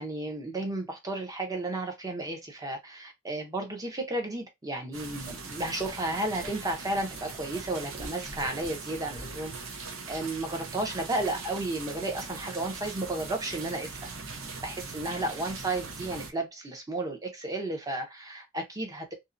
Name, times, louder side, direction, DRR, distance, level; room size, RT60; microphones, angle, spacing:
voice 1, 0.0-14.1 14.6-19.1, right 2 dB, 20° right, 0.6 m, -33 dB
sound 1, 4.9-16.3, right 4 dB, 70° right, 0.6 m, -41 dB
sound 2, 5.3-5.4 5.9-6.0 6.4-6.5 7.5-7.6 8.0-8.7 9.1-9.2, right 1 dB, 50° right, 0.9 m, -42 dB
2.6 x 2.1 x 2.5 m
head